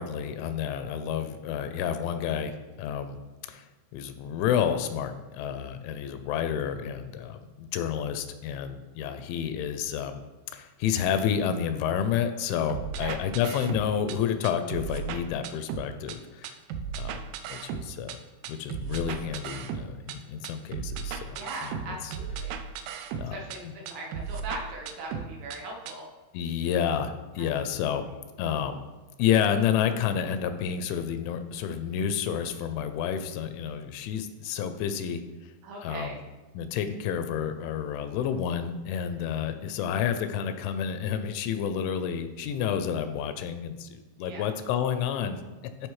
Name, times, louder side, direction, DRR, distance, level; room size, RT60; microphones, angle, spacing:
voice 1, 0.0-3.2 3.5-3.6 3.9-10.2 10.5-16.6 17.0-17.2 17.5-18.2 18.5-21.4 21.9-22.0 23.2-23.4 26.3-28.0 28.4-28.8 29.2-35.2 35.8-36.1 36.6-45.4, left 8 dB, 85° left, 9 dB, 2.9 m, -30 dB
sound 1, 12.7-14.2 14.4-16.2 16.4-18.2 18.4-20.2 20.4-23.6 23.9-25.6 25.9-26.0, right 7 dB, 90° right, 3.1 m, -35 dB
voice 2, 21.3-22.6 23.3-26.1 27.7-28.2 35.6-36.2 39.0-39.3 44.2-44.5, right 2 dB, 75° right, -2 dB, 2.9 m, -40 dB
12.0 x 4.9 x 3.1 m, 1.2 s
omnidirectional pair, 5.5 m